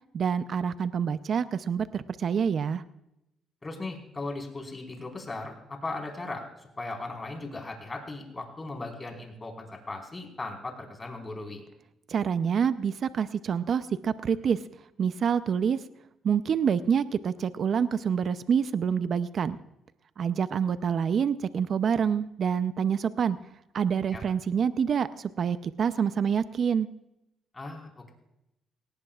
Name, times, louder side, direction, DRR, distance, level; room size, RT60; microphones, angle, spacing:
voice 1, 0.1-2.8 12.1-14.6 15.0-15.8 16.2-19.6 20.2-23.4 23.7-26.9, right 7 dB, 55° right, 12 dB, 0.6 m, -27 dB
voice 2, 3.6-6.4 6.8-11.6 24.1-24.2 27.5-28.1, left 2 dB, 25° left, 2 dB, 4.6 m, -37 dB
19.0 x 18.0 x 2.4 m, 0.87 s
cardioid pair, 90°, 0 cm